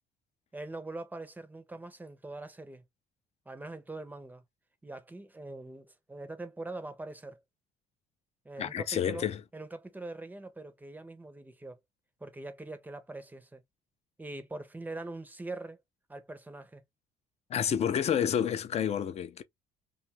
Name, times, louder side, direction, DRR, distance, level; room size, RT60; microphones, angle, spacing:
voice 1, 0.5-2.8 3.5-4.4 4.8-7.4 8.4-9.3 9.5-11.8 12.2-13.6 14.2-15.8 16.1-16.8, right 2 dB, 10° right, 0.6 m, -43 dB
voice 2, 8.6-9.4 17.5-19.4, left 9 dB, 40° left, 0.4 m, -29 dB
2.6 x 2.3 x 2.9 m
cardioid pair, 110°, 17 cm